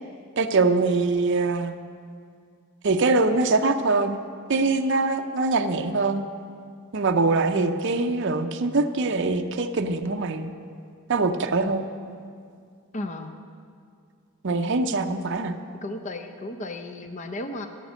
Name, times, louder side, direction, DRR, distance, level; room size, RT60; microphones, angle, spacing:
voice 1, 0.4-1.7 2.8-4.2 4.5-6.2 6.9-10.5 11.1-11.8 14.4-15.5, right 3 dB, 55° right, 6 dB, 0.6 m, -23 dB
voice 2, 12.9-13.3 15.8-17.7, left 2 dB, 35° left, 7 dB, 0.5 m, -34 dB
12.5 x 9.3 x 6.3 m, 2.2 s
head